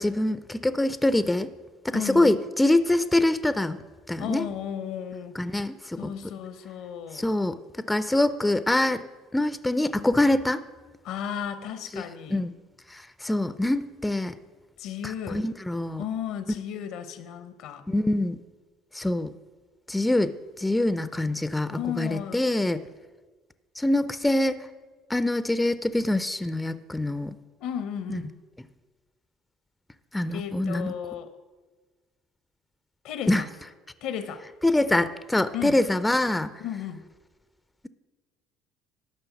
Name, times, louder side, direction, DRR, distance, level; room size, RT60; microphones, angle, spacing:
voice 1, 0.0-1.5 1.8-3.8 4.1-4.5 5.3-6.1 7.1-7.6 7.9-9.1 9.3-10.6 11.9-12.0 12.3-12.5 13.2-14.3 15.0-16.0 17.9-18.4 19.0-19.3 19.9-22.8 23.8-24.6 25.1-27.3 28.1-28.2 30.1-30.9 33.3-33.4 34.6-36.5, left 1 dB, 10° left, 13 dB, 0.6 m, -24 dB
voice 2, 1.9-2.4 4.2-5.3 6.0-7.3 11.0-12.4 14.8-15.4 16.0-17.8 21.7-22.4 27.6-28.3 30.3-31.3 33.0-33.5 34.0-34.4 35.5-35.8 36.6-37.0, left 9 dB, 65° left, 12 dB, 0.8 m, -34 dB
11.5 x 5.6 x 7.0 m, 1.3 s
hypercardioid pair, 60°, 0 cm